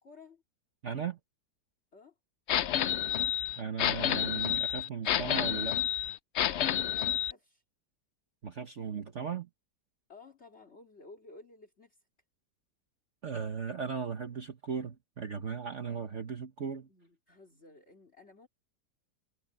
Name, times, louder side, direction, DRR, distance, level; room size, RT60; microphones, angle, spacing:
voice 1, 0.0-0.4 1.9-2.1 6.9-7.6 10.1-12.0 16.9-18.5, left 3 dB, 40° left, 3.1 m, -54 dB
voice 2, 0.8-1.2 3.6-5.8 8.4-9.5 13.2-16.9, right 6 dB, 45° right, 1.4 m, -37 dB
sound 1, 2.5-7.3, left 11 dB, 80° left, 0.6 m, -29 dB
omnidirectional pair, 1.8 m